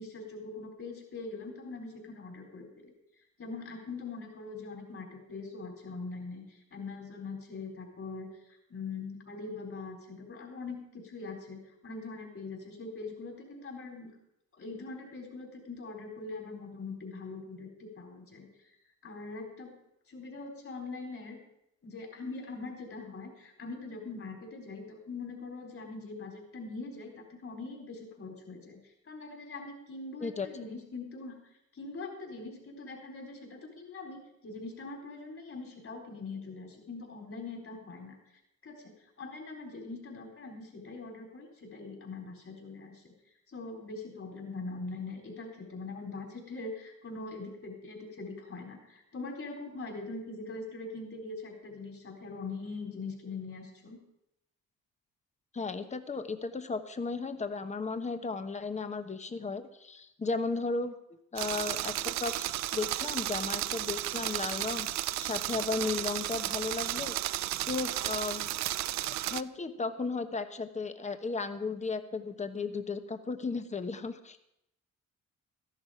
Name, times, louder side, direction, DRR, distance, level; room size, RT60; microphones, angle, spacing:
voice 1, 0.0-2.9 3.4-14.1 14.5-18.5 19.0-19.8 20.1-21.4 21.8-28.8 29.0-31.4 31.7-38.2 38.6-43.1 43.5-54.0, left 3 dB, 45° left, 1 dB, 4.0 m, -42 dB
voice 2, 55.5-60.9 61.3-67.1 67.7-68.5 69.2-74.4, left 4 dB, 25° left, 9 dB, 1.0 m, -35 dB
sound 1, 61.4-69.4, right 14 dB, 65° right, 0.5 m, -33 dB
13.5 x 11.0 x 5.0 m, 0.80 s
cardioid pair, 90°, 30 cm